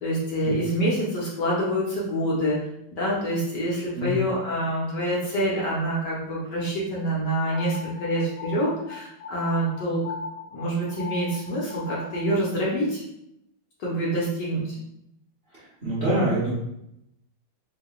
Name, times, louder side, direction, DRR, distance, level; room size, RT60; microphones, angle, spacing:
voice 1, 0.0-2.6 2.9-10.0 10.5-13.0 13.8-14.7, right 1 dB, 60° left, -6 dB, 1.4 m, -26 dB
sound 1, 7.5-12.4, left 4 dB, 80° left, 0.9 m, -39 dB
voice 2, 15.8-16.5, right 1 dB, 35° right, -9 dB, 1.1 m, -24 dB
4.6 x 2.8 x 2.4 m, 0.81 s
omnidirectional pair, 2.3 m